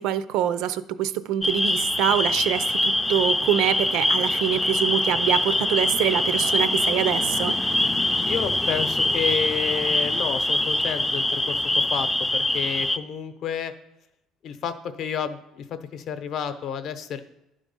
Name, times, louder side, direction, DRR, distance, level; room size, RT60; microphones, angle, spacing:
voice 1, 0.0-7.5, right 11 dB, 75° right, 14 dB, 0.5 m, -25 dB
sound 1, 1.4-13.0, left 1 dB, 10° left, 0.3 m, -24 dB
voice 2, 8.2-13.7 14.4-17.2, left 7 dB, 55° left, 10 dB, 0.7 m, -30 dB
11.0 x 3.7 x 5.3 m, 0.87 s
cardioid pair, 135°, 0 cm